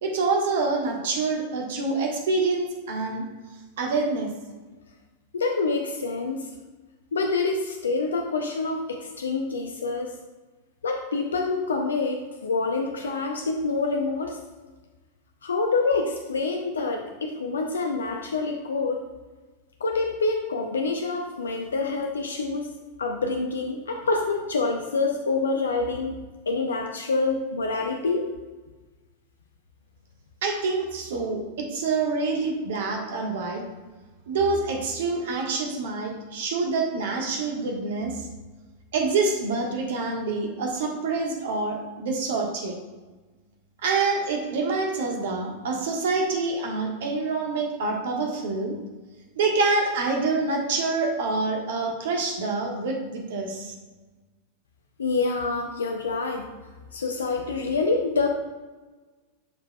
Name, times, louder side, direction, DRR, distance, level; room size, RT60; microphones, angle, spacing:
voice 1, 0.0-3.2 3.8-4.3 30.4-33.6 34.3-38.2 38.9-42.8 43.8-48.7 49.4-53.7, right 3 dB, 55° right, 2 dB, 1.3 m, -26 dB
voice 2, 5.3-6.5 7.1-10.1 10.8-14.4 15.4-19.0 19.8-22.7 23.0-26.2 26.5-28.3 55.0-56.5 56.9-58.3, left 3 dB, 70° left, 3 dB, 0.6 m, -26 dB
11.5 x 4.6 x 2.3 m, 1.3 s
figure-of-eight pair, 90°, 0 cm